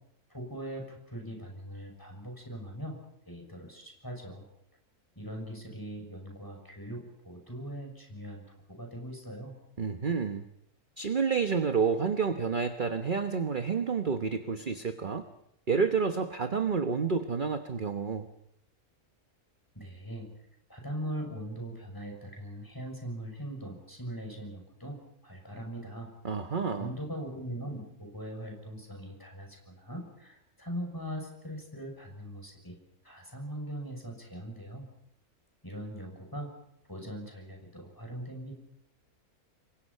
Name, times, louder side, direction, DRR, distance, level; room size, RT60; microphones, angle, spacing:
voice 1, 0.3-3.0 3.3-4.4 5.2-9.5 19.7-20.3 20.7-26.1 26.7-32.8 33.0-34.9 35.6-36.5 36.9-38.6, equal, 15° left, 2 dB, 6.4 m, -41 dB
voice 2, 9.8-10.4 11.0-15.3 15.7-18.3 26.2-26.9, right 5 dB, 35° right, 7 dB, 1.1 m, -29 dB
28.5 x 23.5 x 5.6 m, 0.77 s
omnidirectional pair, 1.6 m